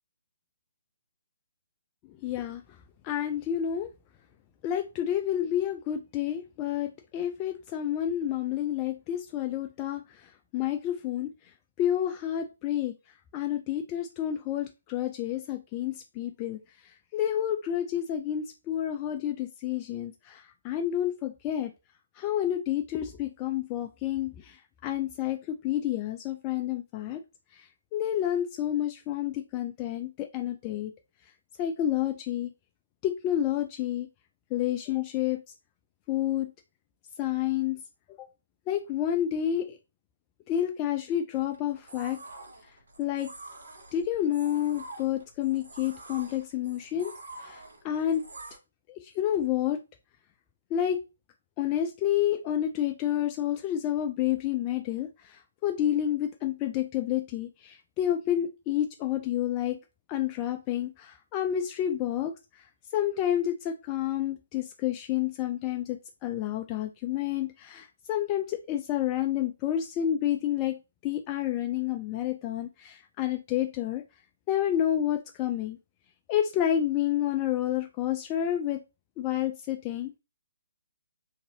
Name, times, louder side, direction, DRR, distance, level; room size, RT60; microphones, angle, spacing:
voice 1, 2.1-2.8 3.0-3.9 4.6-11.3 11.8-12.9 13.3-21.7 22.1-27.2 27.5-30.9 31.6-32.5 33.0-34.1 34.5-35.4 36.1-36.5 37.2-37.8 38.2-38.3 38.7-39.8 40.5-42.2 43.0-43.3 43.9-47.1 47.4-48.3 48.9-49.8 50.7-51.0 51.6-59.8 60.1-74.0 74.5-75.8 76.3-78.8 79.2-80.2, left 11 dB, 25° left, 0.3 m, -29 dB
sound 1, 41.3-48.6, right 2 dB, 65° right, 0.9 m, -47 dB
2.7 x 2.6 x 2.6 m
figure-of-eight pair, 140°, 0 cm